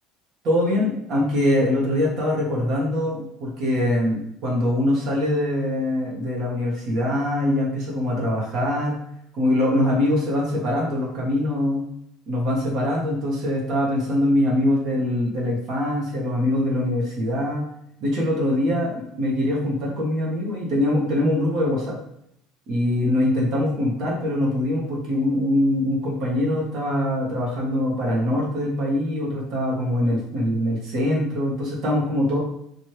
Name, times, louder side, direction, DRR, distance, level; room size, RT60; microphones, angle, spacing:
voice 1, 0.4-9.0 9.3-11.9 12.3-17.7 18.0-22.0 22.7-32.4, left 1 dB, 50° right, -4 dB, 1.2 m, -23 dB
3.2 x 2.6 x 4.5 m, 0.76 s
cardioid pair, 150°, 0 cm